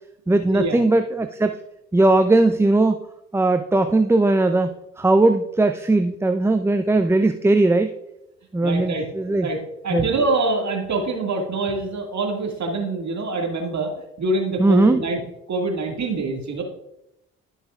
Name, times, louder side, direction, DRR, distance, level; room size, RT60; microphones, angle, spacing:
voice 1, 0.3-1.5 1.9-3.0 3.3-7.9 8.5-9.5 9.9-10.0 14.6-15.0, right 2 dB, 5° right, 8 dB, 0.5 m, -18 dB
voice 2, 8.6-9.1 9.4-13.9 14.2-15.2 15.5-16.6, right 3 dB, 50° right, 1 dB, 2.1 m, -25 dB
15.5 x 5.5 x 2.4 m, 0.86 s
hypercardioid pair, 40°, 37 cm